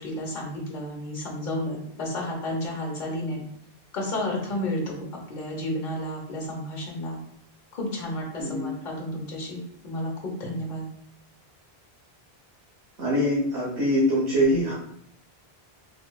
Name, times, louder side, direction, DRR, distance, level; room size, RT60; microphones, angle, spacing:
voice 1, 0.0-3.4 3.9-7.2 7.7-10.9, left 1 dB, 50° left, -1 dB, 1.0 m, -32 dB
voice 2, 8.4-8.7 13.0-14.7, equal, 90° right, -7 dB, 1.2 m, -23 dB
3.7 x 3.0 x 2.2 m, 0.69 s
omnidirectional pair, 1.1 m